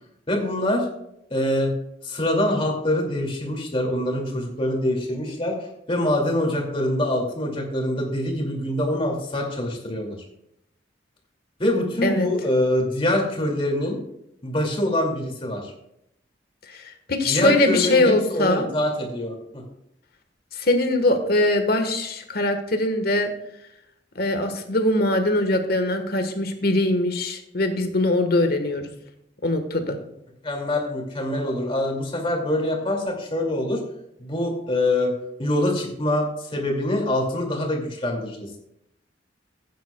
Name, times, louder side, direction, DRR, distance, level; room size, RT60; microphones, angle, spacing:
voice 1, 0.3-0.9 1.3-1.7 2.0-5.5 5.9-10.2 11.6-14.0 14.4-15.7 17.3-19.6 30.4-33.8 34.2-35.1 35.4-38.6, left 1 dB, 30° left, 1 dB, 2.4 m, -24 dB
voice 2, 17.1-18.7 20.6-23.3 24.1-28.8 29.4-30.0, left 1 dB, 60° left, 6 dB, 1.4 m, -22 dB
15.0 x 9.3 x 2.3 m, 0.78 s
head